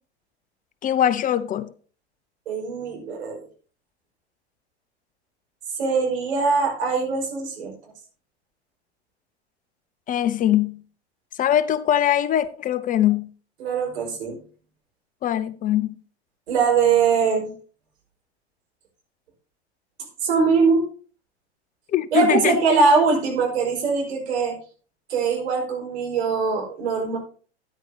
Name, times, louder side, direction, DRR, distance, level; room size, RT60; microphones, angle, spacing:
voice 1, 0.8-1.7 10.1-10.8 11.4-13.3 15.2-15.9 21.9-22.6, left 11 dB, 25° left, 0.6 m, -21 dB
voice 2, 2.5-3.4 5.8-7.7 13.6-14.4 16.5-17.5 20.2-20.8 22.1-24.6 25.1-27.2, right 5 dB, 70° right, 5.2 m, -22 dB
13.5 x 9.9 x 2.9 m
figure-of-eight pair, 90°, 34 cm